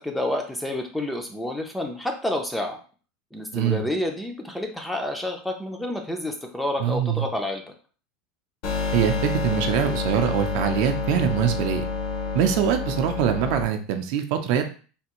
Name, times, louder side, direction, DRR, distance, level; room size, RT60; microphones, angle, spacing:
voice 1, 0.0-2.8 3.3-7.6, left 1 dB, 5° left, 3 dB, 0.4 m, -29 dB
voice 2, 6.8-7.2 8.9-11.8 12.3-14.6, right 9 dB, 55° right, 7 dB, 0.4 m, -23 dB
sound 1, 8.6-13.6, left 4 dB, 50° left, 0.7 m, -28 dB
3.4 x 2.4 x 2.9 m, 0.38 s
supercardioid pair, 165°, 0 cm